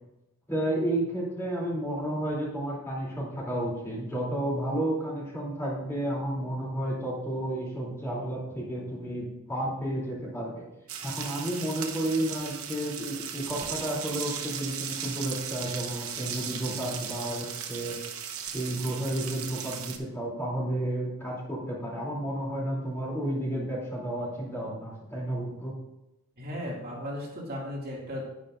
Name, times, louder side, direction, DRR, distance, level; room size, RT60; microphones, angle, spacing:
voice 1, 0.5-10.7 11.0-18.0 18.5-25.7, right 1 dB, 10° left, -5 dB, 3.0 m, -32 dB
sound 1, 10.9-20.0, right 8 dB, 65° right, 1.0 m, -37 dB
voice 2, 26.4-28.2, equal, 45° right, -4 dB, 2.2 m, -36 dB
11.5 x 9.5 x 2.5 m, 0.93 s
head